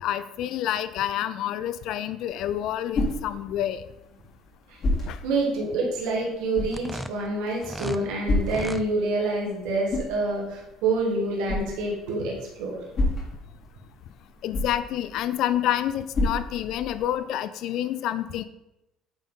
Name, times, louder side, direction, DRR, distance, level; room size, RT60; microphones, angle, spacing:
voice 1, 0.0-3.8 5.1-5.2 14.4-18.4, left 11 dB, 70° left, 13 dB, 0.3 m, -28 dB
sound 1, 2.3-17.2, left 2 dB, 50° left, 2.2 m, -33 dB
voice 2, 5.2-12.8, right 2 dB, 80° right, -2 dB, 1.7 m, -27 dB
sound 2, 6.7-8.0 8.4-8.9, right 1 dB, 5° right, 0.4 m, -35 dB
8.9 x 3.6 x 3.9 m, 0.90 s
supercardioid pair, 85°, 0 cm